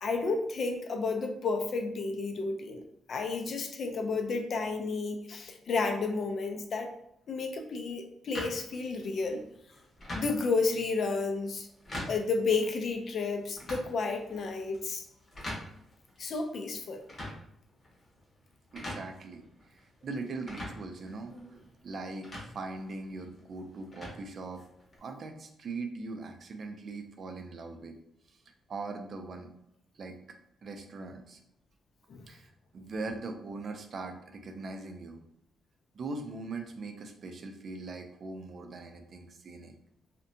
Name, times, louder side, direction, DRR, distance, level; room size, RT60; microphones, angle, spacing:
voice 1, 0.0-6.9 7.3-9.4 10.1-11.7 12.1-15.0 16.2-17.0 32.1-32.3, left 4 dB, 50° left, 4 dB, 0.4 m, -31 dB
sound 1, 8.3-25.0, left 1 dB, 30° left, 0.8 m, -45 dB
voice 2, 18.7-21.3 21.8-24.6 25.0-28.0 28.3-28.4 28.7-29.5 29.9-30.2 30.6-31.4 32.3-35.2 35.9-39.7, right 3 dB, 45° right, 5 dB, 0.4 m, -41 dB
2.6 x 2.1 x 2.6 m, 0.77 s
cardioid pair, 150°, 0 cm